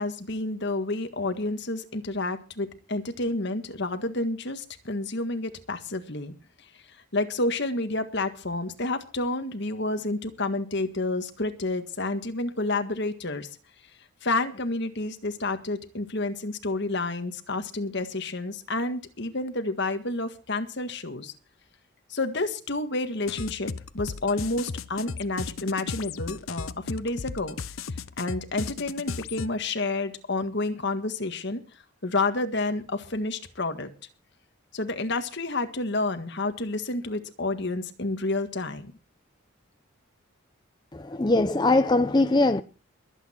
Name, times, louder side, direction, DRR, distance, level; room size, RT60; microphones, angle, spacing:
voice 1, 0.0-6.3 7.1-13.5 14.2-21.3 22.1-27.6 28.2-31.6 32.0-33.9 34.7-38.9, left 2 dB, 55° left, 1.7 m, -29 dB
sound 1, 23.3-29.5, left 4 dB, 80° left, 0.8 m, -36 dB
voice 2, 40.9-42.6, left 2 dB, 20° left, 0.6 m, -21 dB
22.0 x 8.6 x 4.4 m
head